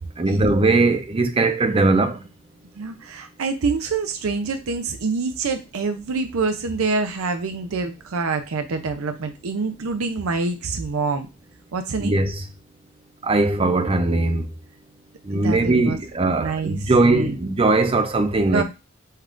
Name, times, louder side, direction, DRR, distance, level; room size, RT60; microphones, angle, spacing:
voice 1, 0.2-2.2 12.0-12.3 13.3-14.5 15.3-18.6, right 2 dB, 25° right, 0.5 m, -19 dB
voice 2, 2.8-11.3 11.7-12.2 15.3-16.0 16.4-17.3 18.5-18.6, right 4 dB, 80° right, 0.5 m, -26 dB
5.4 x 2.4 x 3.6 m
head